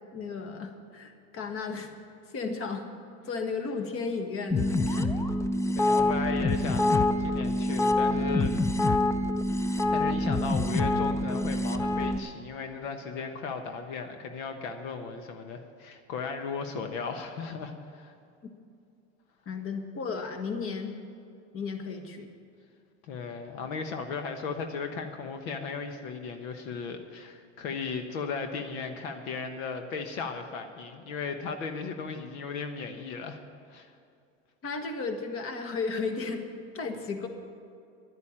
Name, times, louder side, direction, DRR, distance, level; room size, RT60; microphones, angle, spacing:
voice 1, 0.1-1.9 2.3-2.8 3.3-5.1 18.4-18.5 19.4-20.9 21.5-22.3 34.6-36.4 36.7-37.3, left 4 dB, 35° left, 6 dB, 1.6 m, -34 dB
sound 1, 4.5-12.2, left 2 dB, 10° left, 0.5 m, -26 dB
voice 2, 5.7-8.6 9.5-18.1 23.1-33.4 33.7-33.9, left 5 dB, 70° left, 6 dB, 1.3 m, -36 dB
11.5 x 9.8 x 8.8 m, 2.4 s
supercardioid pair, 115°, 40 cm